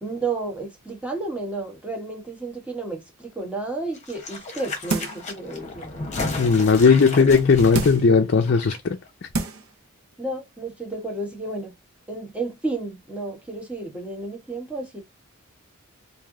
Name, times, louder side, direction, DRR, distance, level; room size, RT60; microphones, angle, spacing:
voice 1, 0.0-6.4 10.2-11.7 12.1-15.0, right 2 dB, 5° right, 1.2 m, -32 dB
sound 1, 3.9-8.8 9.1-9.2, left 3 dB, 35° left, 1.0 m, -33 dB
sound 2, 4.9-5.3 5.8-5.9 7.7-8.2 8.9-9.0 9.3-9.7 10.1-10.2, right 3 dB, 85° right, 0.8 m, -28 dB
voice 2, 6.4-9.0, left 5 dB, 50° left, 0.5 m, -17 dB
3.3 x 2.6 x 3.7 m
head